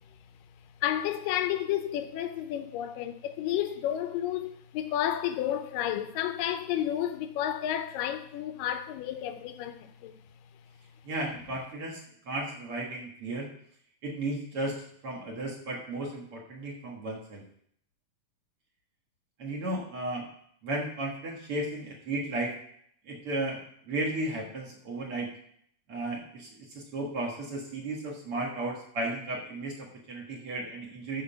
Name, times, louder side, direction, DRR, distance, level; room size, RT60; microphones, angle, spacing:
voice 1, 0.8-10.1, left 11 dB, 80° left, 2.2 m, -31 dB
voice 2, 11.1-13.5 14.0-17.4 19.4-20.3 20.6-22.5 23.1-25.3 25.9-31.2, right 2 dB, 50° right, 2.0 m, -34 dB
14.0 x 5.0 x 5.7 m
omnidirectional pair, 4.0 m